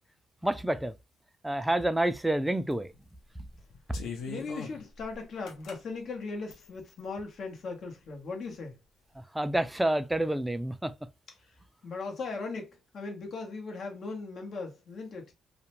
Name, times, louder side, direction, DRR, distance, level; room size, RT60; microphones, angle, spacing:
voice 1, 0.4-0.9 1.4-2.9 9.3-10.9, right 1 dB, 10° right, 0.3 m, -28 dB
sound 1, 2.1-2.2 2.7-3.0 3.5-5.8 6.5-7.0, left 5 dB, 80° left, 0.6 m, -41 dB
voice 2, 4.3-8.7 11.8-15.3, left 4 dB, 60° left, 1.0 m, -38 dB
2.4 x 2.1 x 2.9 m
cardioid pair, 85°, 0 cm